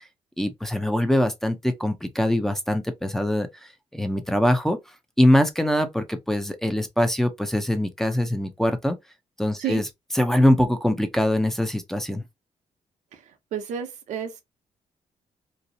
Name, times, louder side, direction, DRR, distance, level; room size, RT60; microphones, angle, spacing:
voice 1, 0.4-3.5 3.9-4.8 5.2-9.0 9.4-9.9 10.1-12.2, left 1 dB, 5° left, 0.5 m, -23 dB
voice 2, 13.5-14.4, right 8 dB, 90° right, 0.6 m, -30 dB
2.6 x 2.0 x 2.6 m
cardioid pair, 110°, 12 cm